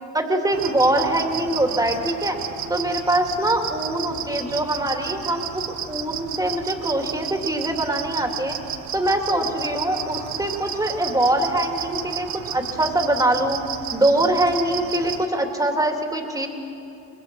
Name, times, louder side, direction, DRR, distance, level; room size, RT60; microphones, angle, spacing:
voice 1, 0.1-2.4 2.7-8.6 8.9-12.3 12.5-13.6 13.9-16.5, right 1 dB, 10° right, 3 dB, 2.7 m, -23 dB
sound 1, 0.5-15.3, right 9 dB, 70° right, 1.1 m, -32 dB
24.5 x 21.5 x 6.3 m, 2.8 s
cardioid pair, 90°, 30 cm